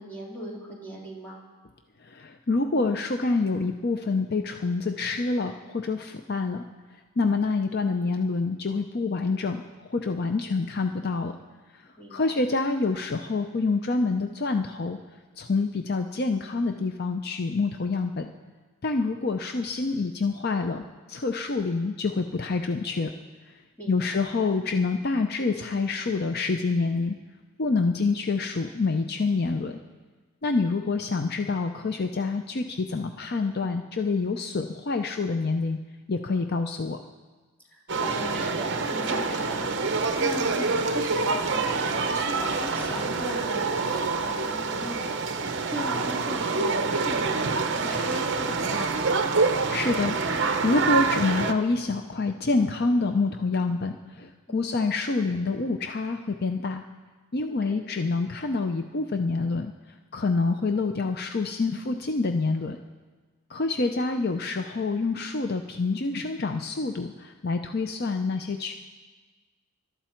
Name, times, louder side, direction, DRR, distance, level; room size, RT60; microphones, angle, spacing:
voice 1, 0.0-1.4 10.4-10.6 12.0-12.3 23.8-24.2 30.8-31.0 37.7-49.1 54.5-54.7 57.7-57.9 63.8-63.9, equal, 5° left, -5 dB, 2.8 m, -38 dB
voice 2, 2.0-11.4 11.7-15.0 15.4-18.3 18.8-23.1 23.5-23.6 23.9-27.2 27.6-29.8 30.4-35.8 36.1-37.0 49.7-56.8 57.3-62.8 63.5-68.7, left 3 dB, 45° left, 6 dB, 0.6 m, -27 dB
sound 1, 37.9-51.5, right 4 dB, 55° right, 0.9 m, -26 dB
21.5 x 12.5 x 4.5 m, 1.3 s
head